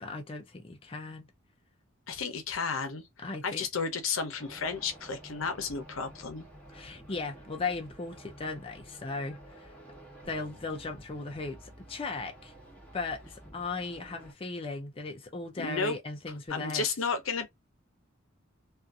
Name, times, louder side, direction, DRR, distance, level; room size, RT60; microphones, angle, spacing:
voice 1, 0.0-1.3 3.2-3.7 6.7-9.7 10.2-12.5 12.9-16.9, left 3 dB, 25° left, 0.5 m, -37 dB
voice 2, 2.1-3.1 3.4-6.4 15.6-16.0 16.5-17.5, left 5 dB, 80° left, 0.8 m, -32 dB
sound 1, 4.4-14.3, right 1 dB, 5° left, 1.0 m, -51 dB
sound 2, 10.2-16.5, equal, 70° right, 1.3 m, -63 dB
2.6 x 2.5 x 2.3 m
head